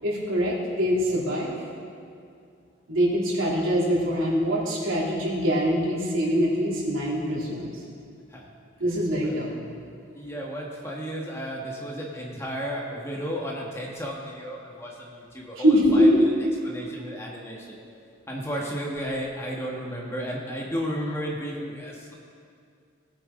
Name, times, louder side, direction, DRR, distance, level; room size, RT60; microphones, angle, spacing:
voice 1, 0.0-1.5 2.9-7.7 8.8-9.5 15.6-16.2, equal, 90° right, -5 dB, 2.9 m, -23 dB
voice 2, 8.8-9.4 9.9-17.8 18.3-22.1, equal, 15° left, -2 dB, 1.3 m, -34 dB
17.5 x 8.7 x 3.7 m, 2.3 s
head